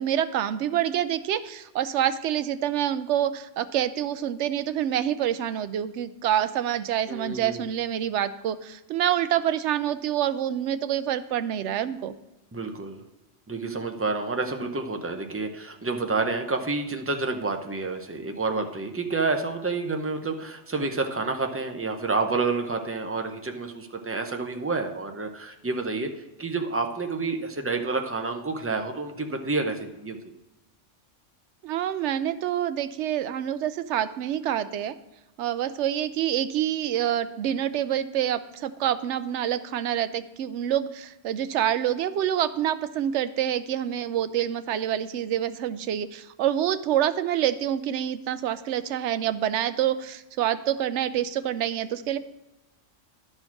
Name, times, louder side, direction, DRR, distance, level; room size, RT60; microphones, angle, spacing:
voice 1, 0.0-12.1 31.6-34.9 35.4-52.2, right 10 dB, 75° right, 12 dB, 0.9 m, -27 dB
voice 2, 7.1-7.7 12.5-13.0 13.5-26.1 26.4-30.4, right 3 dB, 15° right, 4 dB, 0.5 m, -29 dB
11.0 x 4.4 x 5.8 m, 0.99 s
omnidirectional pair, 1.2 m